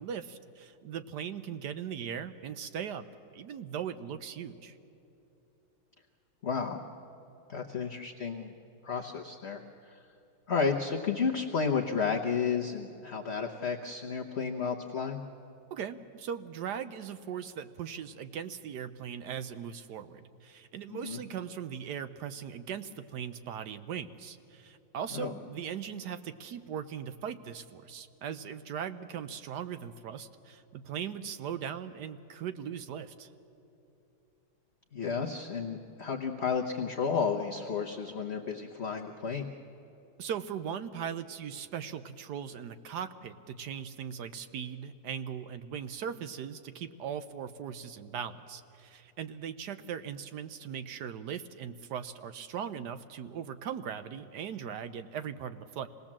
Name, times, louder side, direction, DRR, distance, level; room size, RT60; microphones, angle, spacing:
voice 1, 0.0-3.1 3.3-4.8 15.7-33.3 40.2-55.9, right 8 dB, 65° right, 11 dB, 1.1 m, -39 dB
voice 2, 6.4-6.8 7.5-8.5 8.8-9.6 9.9-10.0 10.5-15.2 20.9-21.2 25.1-25.3 34.9-39.5, left 5 dB, 45° left, 2 dB, 0.9 m, -32 dB
26.0 x 18.5 x 7.4 m, 2.9 s
omnidirectional pair, 2.2 m